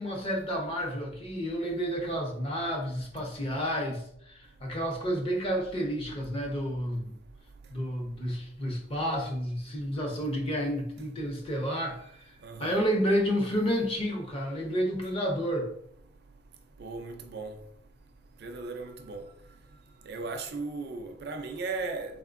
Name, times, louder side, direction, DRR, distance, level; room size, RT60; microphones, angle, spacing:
voice 1, 0.0-7.1 7.7-12.1 12.6-15.7, equal, 30° left, 0.7 m, -30 dB
voice 2, 12.4-12.8 16.8-17.6 18.4-19.2 20.1-22.2, right 3 dB, 55° right, 0.4 m, -36 dB
3.6 x 3.5 x 2.5 m
head